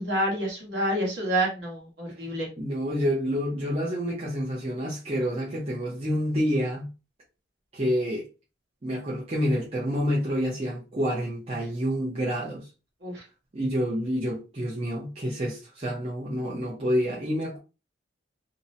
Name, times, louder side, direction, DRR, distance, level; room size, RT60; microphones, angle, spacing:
voice 1, 0.0-2.5 13.0-13.2, right 1 dB, 55° right, 1.1 m, -28 dB
voice 2, 2.2-6.9 7.7-8.3 8.8-12.7 13.5-17.6, equal, 30° right, 0.6 m, -28 dB
2.6 x 2.1 x 2.6 m
head